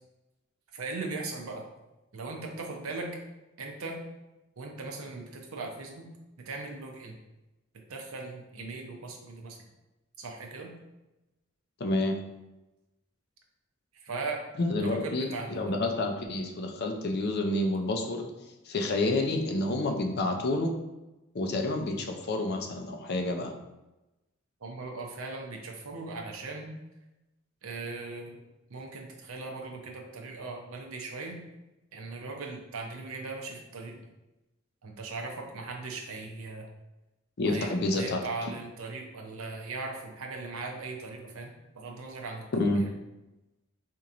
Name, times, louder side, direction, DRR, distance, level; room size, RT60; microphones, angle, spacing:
voice 1, 0.7-1.6 2.1-3.1 3.6-4.0 4.6-6.1 6.4-7.1 7.9-9.6 10.2-10.7 14.0-14.4 14.9-15.7 24.6-26.7 27.6-28.4 28.7-31.4 31.9-34.0 34.8-36.7 37.4-42.5, right 3 dB, 85° right, 2 dB, 0.7 m, -39 dB
voice 2, 11.8-12.2 14.6-18.3 18.6-20.7 21.3-23.5 37.4-38.5 42.5-42.8, left 2 dB, 50° left, 3 dB, 0.5 m, -29 dB
4.4 x 2.9 x 2.5 m, 1.0 s
head